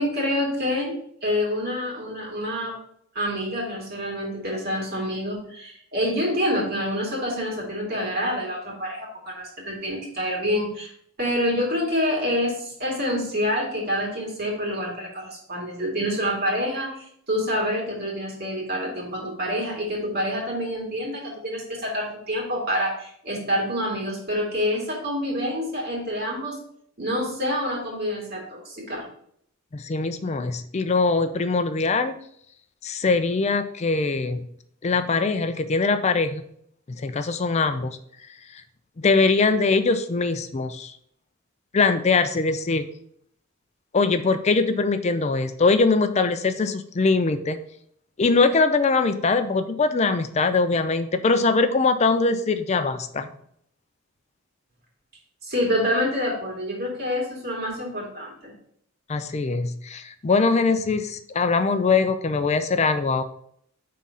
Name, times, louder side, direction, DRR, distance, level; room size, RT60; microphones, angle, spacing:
voice 1, 0.0-2.8 3.1-10.9 11.2-26.6 27.0-29.1 55.4-58.5, equal, 50° right, -2 dB, 2.3 m, -27 dB
voice 2, 29.7-32.2 32.8-34.4 34.8-36.4 36.9-38.0 39.0-40.9 41.7-42.9 43.9-47.6 48.2-53.3 59.1-63.2, left 4 dB, 30° left, 10 dB, 0.4 m, -22 dB
5.7 x 3.7 x 5.5 m, 0.68 s
head